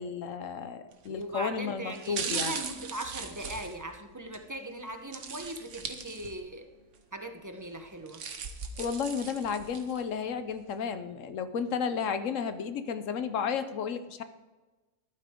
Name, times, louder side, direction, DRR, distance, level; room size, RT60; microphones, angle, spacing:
voice 1, 0.0-2.5 8.8-14.2, left 6 dB, 70° left, 11 dB, 1.1 m, -33 dB
sound 1, 0.9-1.2 1.9-4.4 5.1-6.6 6.9-7.0 7.8-10.0 10.5-10.6, right 6 dB, 65° right, 1.3 m, -38 dB
voice 2, 1.1-6.6 7.1-8.2, right 1 dB, 15° right, 4 dB, 0.9 m, -39 dB
13.5 x 11.5 x 3.7 m, 1.2 s
omnidirectional pair, 1.4 m